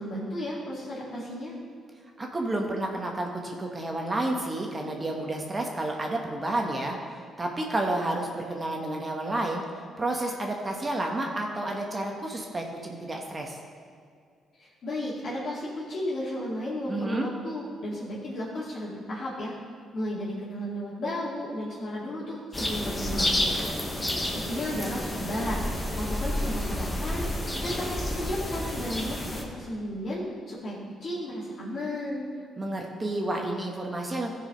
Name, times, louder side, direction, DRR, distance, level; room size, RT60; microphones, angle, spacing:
voice 1, 0.0-1.5 14.6-19.5 19.9-23.6 24.3-32.3, left 1 dB, 55° left, -7 dB, 2.4 m, -34 dB
voice 2, 2.2-7.0 7.4-9.6 10.0-13.6 16.9-17.3 32.6-34.3, right 1 dB, 25° right, 1 dB, 1.3 m, -30 dB
sound 1, 22.5-29.4, left 1 dB, 15° left, 1.4 m, -30 dB
14.0 x 4.9 x 5.1 m, 2.2 s
cardioid pair, 90°, 0 cm